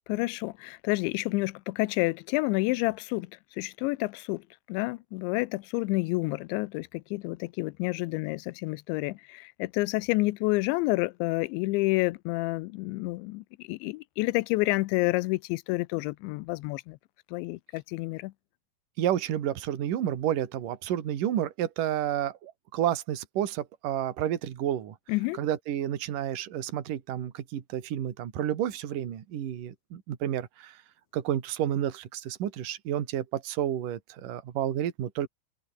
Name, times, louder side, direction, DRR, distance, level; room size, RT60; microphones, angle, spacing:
voice 1, 0.1-3.3 3.6-4.4 4.7-17.0 17.3-18.3 25.1-25.4, left 22 dB, 85° left, 3.0 m, -29 dB
voice 2, 19.0-24.9 25.4-30.8 31.1-35.3, right 11 dB, 55° right, 3.3 m, -30 dB
open air
omnidirectional pair, 5.2 m